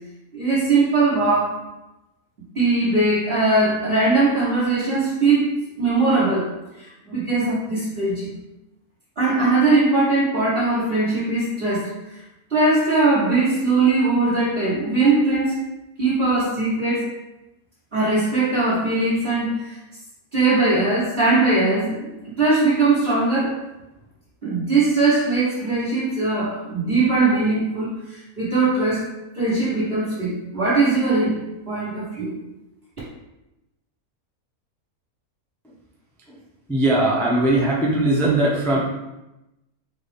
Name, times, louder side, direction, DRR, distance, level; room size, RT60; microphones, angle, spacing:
voice 1, 0.3-1.7 2.5-6.5 6.8-8.3 9.2-12.2 12.5-15.6 16.0-17.2 17.9-19.8 20.3-23.6 24.4-29.1 29.3-31.4 31.7-32.3, right 3 dB, 40° right, -11 dB, 1.4 m, -20 dB
voice 2, 36.7-38.8, right 2 dB, 5° left, -4 dB, 0.4 m, -20 dB
4.0 x 3.4 x 3.4 m, 0.96 s
omnidirectional pair, 1.6 m